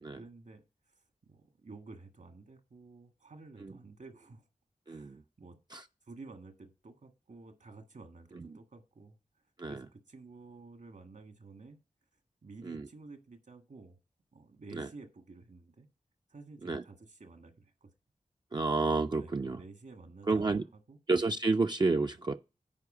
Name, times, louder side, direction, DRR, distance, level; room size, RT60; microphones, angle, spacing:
voice 1, 0.1-0.9 1.2-4.5 4.9-5.6 6.0-9.2 9.7-11.8 12.4-14.0 14.3-15.9 16.3-17.9 19.1-21.0, right 3 dB, 70° right, 1.5 m, -52 dB
voice 2, 4.9-5.2 5.7-5.8 9.6-9.8 12.6-12.9 14.7-14.9 16.6-16.8 18.5-19.6 20.3-20.6 21.1-22.3, right 3 dB, 30° right, 0.4 m, -30 dB
9.7 x 4.8 x 4.8 m
wide cardioid pair, 60°, 14 cm